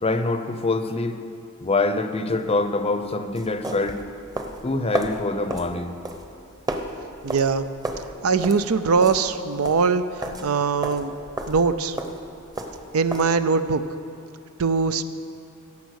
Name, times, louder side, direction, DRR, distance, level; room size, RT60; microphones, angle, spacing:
voice 1, 0.0-1.2 1.6-4.0 4.6-5.9, left 2 dB, 30° left, 9 dB, 0.6 m, -25 dB
sound 1, 2.3-13.3, right 1 dB, 20° right, 0.8 m, -33 dB
voice 2, 7.2-7.7 8.2-10.0 10.4-11.1 11.5-12.0 12.9-13.8 14.6-15.0, right 5 dB, 80° right, 11 dB, 0.5 m, -21 dB
17.0 x 7.1 x 6.4 m, 2.5 s
head